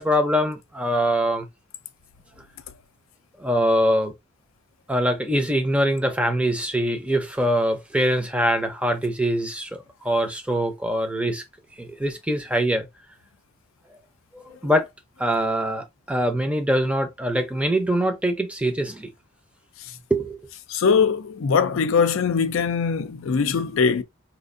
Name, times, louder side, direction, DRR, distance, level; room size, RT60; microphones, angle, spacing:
voice 1, 0.0-1.5 3.4-4.1 4.9-11.4 11.8-12.9 14.3-14.9 15.2-19.1 20.1-20.4, equal, 5° right, 0.6 m, -23 dB
voice 2, 20.7-24.0, left 5 dB, 70° left, 0.4 m, -21 dB
4.3 x 2.5 x 2.5 m
head